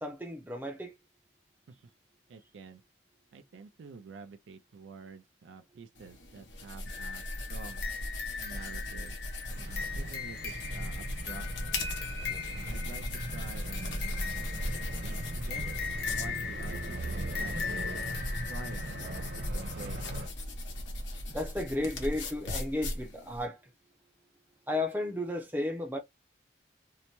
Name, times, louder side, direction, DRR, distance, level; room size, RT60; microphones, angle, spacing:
voice 1, 0.0-0.9 21.3-23.6 24.7-26.0, left 1 dB, 10° right, 0.5 m, -33 dB
voice 2, 2.3-2.8 3.3-7.8 8.4-9.2 9.5-11.5 12.5-13.1 13.3-14.6 15.0-18.0 18.5-20.1, right 4 dB, 85° right, 0.4 m, -48 dB
sound 1, 6.0-23.4, left 1 dB, 85° left, 0.9 m, -38 dB
sound 2, 6.9-19.5, left 5 dB, 60° left, 0.7 m, -40 dB
sound 3, 9.5-20.3, right 1 dB, 65° right, 1.1 m, -41 dB
2.7 x 2.1 x 2.9 m
head